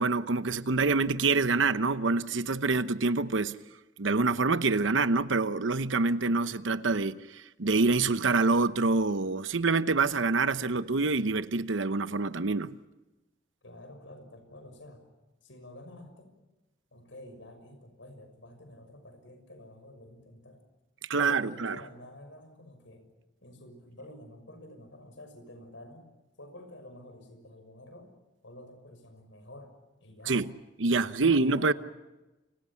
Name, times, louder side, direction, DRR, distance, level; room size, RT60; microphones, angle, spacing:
voice 1, 0.0-3.5 4.0-12.7 21.1-21.8 30.3-30.4 30.8-31.7, right 3 dB, 75° right, 0.9 m, -26 dB
voice 2, 13.6-15.0 15.4-16.3 16.9-20.6 21.1-23.1 23.4-26.1 26.4-28.1 28.4-29.7 30.0-30.4 31.0-31.7, left 1 dB, 75° left, 6.3 m, -49 dB
29.5 x 26.5 x 5.8 m
head